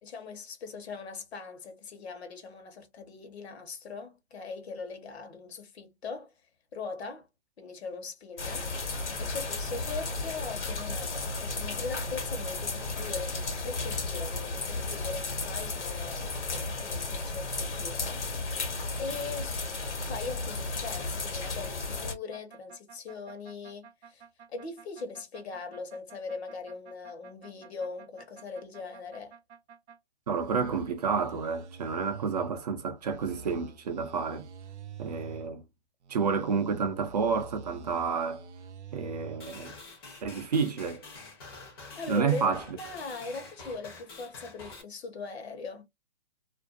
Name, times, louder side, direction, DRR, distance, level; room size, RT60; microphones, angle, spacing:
voice 1, 0.0-6.3 6.7-7.3 7.6-8.7 9.2-18.2 19.0-19.6 20.1-24.2 24.5-29.4 41.9-45.8, left 4 dB, 65° left, 1.0 m, -40 dB
sound 1, 8.4-22.1, left 3 dB, 80° left, 1.2 m, -34 dB
sound 2, 22.3-30.0 30.3-32.5 33.0-35.5 36.0-39.4, right 6 dB, 80° right, 0.6 m, -47 dB
voice 2, 30.3-34.5 35.0-35.6 36.1-38.4 38.9-39.7 40.2-41.0 41.8-42.6, right 5 dB, 35° right, 0.4 m, -30 dB
sound 3, 39.4-44.8, left 3 dB, 20° left, 0.6 m, -47 dB
2.5 x 2.3 x 2.3 m
hypercardioid pair, 150°, 34 cm